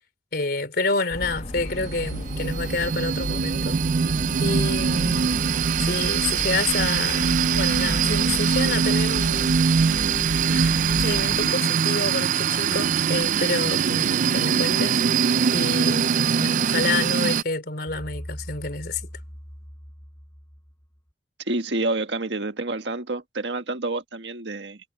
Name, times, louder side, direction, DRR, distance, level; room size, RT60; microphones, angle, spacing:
voice 1, 0.3-3.8 4.4-5.3 5.8-9.6 10.5-15.0 15.5-19.0, left 3 dB, 60° left, 3.4 m, -28 dB
sound 1, 1.1-11.5, left 1 dB, 35° left, 1.5 m, -34 dB
sound 2, 1.6-17.4, right 6 dB, 45° right, 0.4 m, -22 dB
sound 3, 17.9-21.0, equal, 15° left, 4.5 m, -40 dB
voice 2, 21.5-24.8, right 2 dB, 80° right, 1.6 m, -28 dB
head